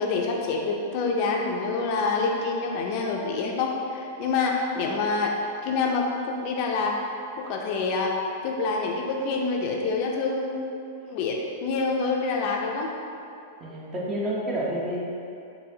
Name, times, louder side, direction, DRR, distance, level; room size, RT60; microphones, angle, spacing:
voice 1, 0.0-5.3 5.6-7.0 7.5-10.8 11.1-12.9, left 4 dB, 50° left, 0 dB, 0.4 m, -27 dB
voice 2, 13.6-15.0, right 1 dB, 25° right, -5 dB, 0.8 m, -29 dB
3.9 x 2.7 x 2.7 m, 2.6 s
hypercardioid pair, 110°, 0 cm